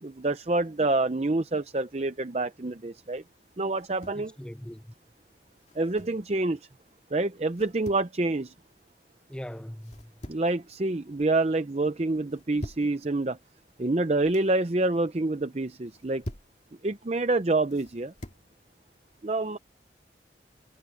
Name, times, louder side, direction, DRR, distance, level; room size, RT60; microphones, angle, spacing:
voice 1, 0.0-3.2 3.6-4.3 5.7-6.6 7.1-8.5 10.3-13.4 13.8-16.2 16.8-18.1 19.2-19.6, right 2 dB, 35° right, 0.6 m, -27 dB
sound 1, 3.7-4.3 5.6-6.2 7.5-8.1 9.8-10.6 10.9-11.4 12.3-12.9 14.0-14.5 15.8-16.6 17.7-18.5, equal, 40° left, 2.3 m, -44 dB
voice 2, 4.1-4.9 9.3-10.1, equal, 5° left, 0.6 m, -40 dB
head